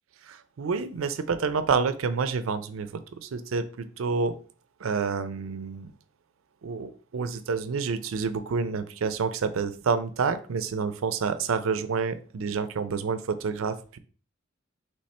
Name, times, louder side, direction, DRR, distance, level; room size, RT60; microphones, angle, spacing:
voice 1, 0.2-4.3 4.8-5.9 6.6-14.0, right 5 dB, 85° right, 12 dB, 0.5 m, -28 dB
3.2 x 3.2 x 4.1 m, 0.40 s
head